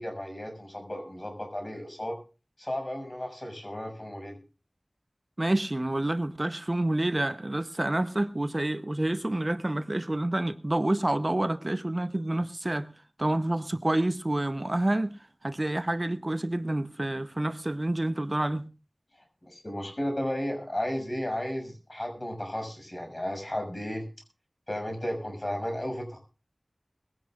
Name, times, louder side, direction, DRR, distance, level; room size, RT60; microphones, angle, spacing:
voice 1, 0.0-2.2 2.6-4.4 19.5-24.1 24.7-26.2, equal, 40° left, 6.4 m, -34 dB
voice 2, 5.4-12.9 13.2-15.2 15.4-18.7, right 1 dB, 45° right, 0.7 m, -28 dB
21.0 x 16.5 x 2.4 m
wide cardioid pair, 40°, 0 cm